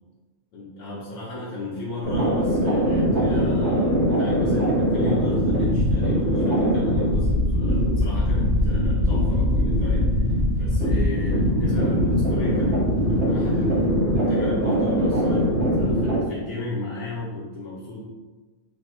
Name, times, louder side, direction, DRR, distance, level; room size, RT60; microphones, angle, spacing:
voice 1, 0.5-15.5 15.8-18.0, left 2 dB, 70° left, -8 dB, 1.1 m, -34 dB
sound 1, 2.0-16.2, equal, 50° right, 1.6 m, -21 dB
4.2 x 2.2 x 3.0 m, 1.3 s
omnidirectional pair, 1.5 m